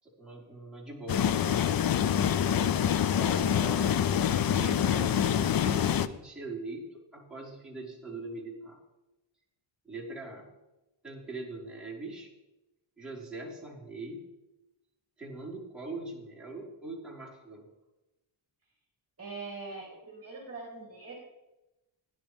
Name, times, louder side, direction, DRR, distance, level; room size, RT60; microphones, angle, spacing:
voice 1, 0.0-1.7 3.1-8.8 9.8-10.5 11.0-12.3 13.0-14.2 15.2-17.7, right 2 dB, ahead, -7 dB, 5.0 m, -41 dB
sound 1, 1.1-6.1, left 9 dB, 50° left, 0.5 m, -26 dB
voice 2, 2.2-2.8 19.2-21.1, right 3 dB, 30° right, -3 dB, 3.1 m, -42 dB
17.0 x 11.0 x 3.6 m, 1.0 s
wide cardioid pair, 125°, 48 cm